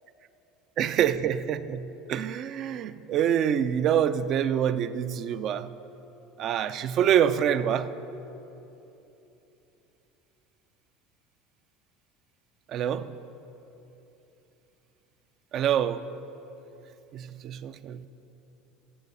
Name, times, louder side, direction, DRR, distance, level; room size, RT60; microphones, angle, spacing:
voice 1, 0.8-5.7 6.4-7.9 12.7-13.1 15.5-16.0 17.1-18.1, right 9 dB, 50° right, 12 dB, 0.5 m, -26 dB
17.5 x 6.9 x 5.5 m, 3.0 s
supercardioid pair, 120°, 0 cm